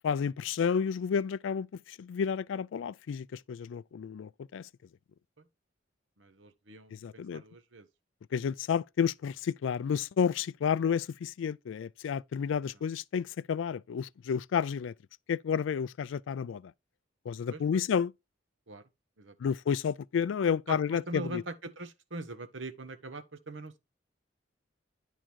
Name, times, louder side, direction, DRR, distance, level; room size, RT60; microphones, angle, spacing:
voice 1, 0.0-4.7 6.9-7.4 8.3-14.9 15.3-16.7 17.3-18.1 19.4-21.4, left 7 dB, 85° left, 0.3 m, -31 dB
voice 2, 6.2-7.9 17.5-17.8 18.7-18.8 19.2-19.3 20.7-23.8, right 2 dB, 85° right, 1.1 m, -42 dB
10.0 x 3.7 x 4.5 m
head